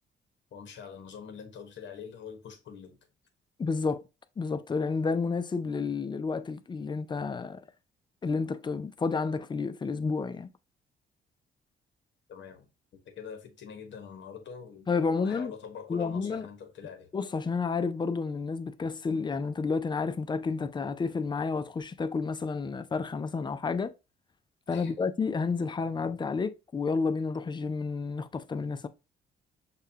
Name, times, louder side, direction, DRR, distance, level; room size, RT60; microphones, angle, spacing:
voice 1, 0.5-2.9 12.3-14.9 15.2-17.1 24.7-25.0, left 6 dB, 65° left, 1.2 m, -44 dB
voice 2, 3.6-4.0 4.4-7.6 8.2-10.5 14.9-15.5 15.9-16.5 17.1-23.9 24.7-28.9, left 4 dB, 25° left, 0.4 m, -30 dB
6.5 x 2.3 x 2.7 m
cardioid pair, 105°, 20 cm